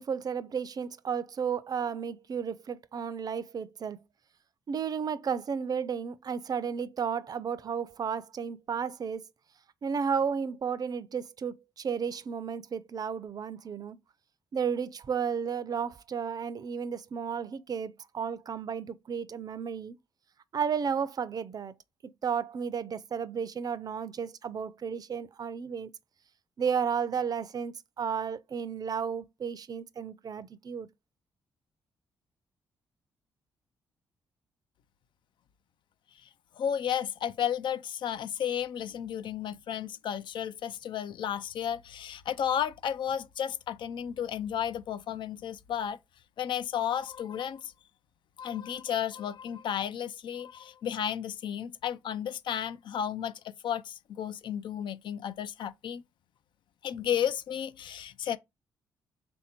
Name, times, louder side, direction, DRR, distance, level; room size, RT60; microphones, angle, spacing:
voice 1, 0.0-4.0 4.7-9.2 9.8-14.0 14.5-20.0 20.5-21.7 22.2-25.9 26.6-30.9, right 6 dB, 50° right, 0.5 m, -33 dB
voice 2, 36.6-46.0 46.4-47.7 48.4-56.0 56.8-58.4, left 9 dB, 65° left, 0.4 m, -33 dB
3.4 x 2.7 x 4.3 m
supercardioid pair, 60°, 9 cm